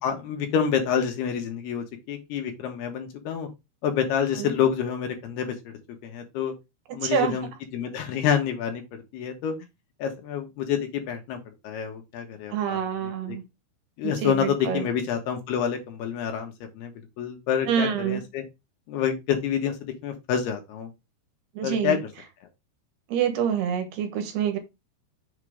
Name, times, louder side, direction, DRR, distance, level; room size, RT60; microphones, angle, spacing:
voice 1, 0.0-3.5 3.8-6.5 6.9-9.5 10.0-11.4 11.6-12.8 13.3-13.4 14.0-16.9 17.2-18.4 18.9-20.9 21.6-22.0, left 8 dB, 75° left, 3.4 m, -28 dB
voice 2, 7.0-7.4 12.5-13.4 14.0-14.9 17.7-18.2 21.6-22.0 23.1-24.6, right 8 dB, 80° right, 3.2 m, -26 dB
7.4 x 3.8 x 5.0 m
omnidirectional pair, 4.7 m